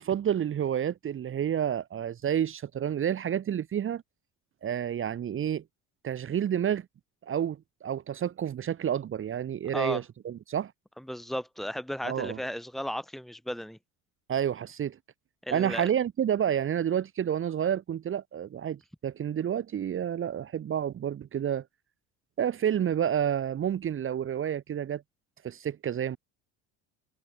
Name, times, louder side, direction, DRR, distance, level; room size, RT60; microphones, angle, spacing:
voice 1, 0.0-4.0 4.6-5.6 6.0-6.9 7.2-10.7 12.0-12.4 14.3-15.0 15.5-21.6 22.4-25.0 25.4-26.2, right 9 dB, 35° right, 1.2 m, -29 dB
voice 2, 11.1-13.8 15.4-15.9, equal, ahead, 3.8 m, -34 dB
cardioid pair, 110°, 35 cm